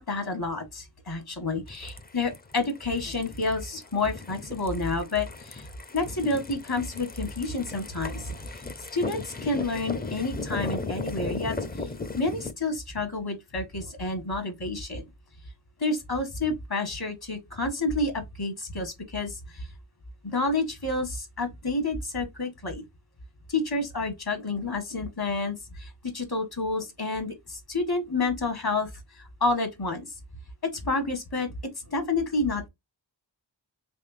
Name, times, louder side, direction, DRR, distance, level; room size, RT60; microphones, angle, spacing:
voice 1, 0.0-5.7 5.9-8.2 8.9-11.9 12.2-15.0 15.8-19.7 20.2-22.8 23.5-28.9 29.4-30.1 30.6-31.5 31.9-32.7, left 3 dB, 55° left, 1.5 m, -29 dB
sound 1, 1.7-12.5, left 3 dB, 20° left, 0.5 m, -37 dB
3.5 x 3.2 x 2.5 m
wide cardioid pair, 55°, 44 cm